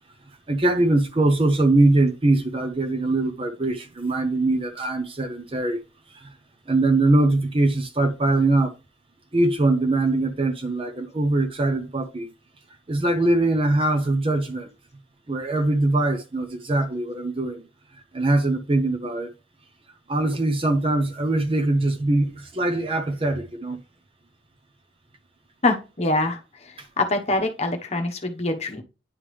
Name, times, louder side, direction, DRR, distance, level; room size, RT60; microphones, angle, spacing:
voice 1, 0.5-5.8 6.1-6.3 6.7-8.7 9.3-12.3 12.9-14.7 15.3-17.6 18.1-19.3 20.1-23.8, right 2 dB, 30° right, 0.7 m, -22 dB
voice 2, 25.6-28.8, left 2 dB, 35° left, 1.0 m, -25 dB
9.9 x 3.7 x 3.2 m
head